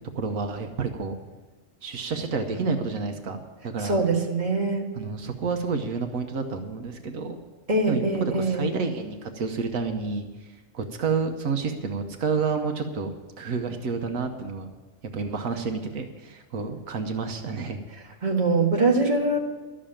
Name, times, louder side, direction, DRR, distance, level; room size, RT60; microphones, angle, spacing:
voice 1, 0.1-1.2 1.8-4.0 4.9-7.4 7.9-10.3 10.7-13.1 13.4-14.7 15.1-17.8, right 4 dB, 85° right, 5 dB, 1.4 m, -29 dB
voice 2, 3.8-4.9 7.7-8.6 18.2-19.4, right 3 dB, 35° right, 0 dB, 1.9 m, -23 dB
12.5 x 7.4 x 8.7 m, 1.2 s
omnidirectional pair, 1.4 m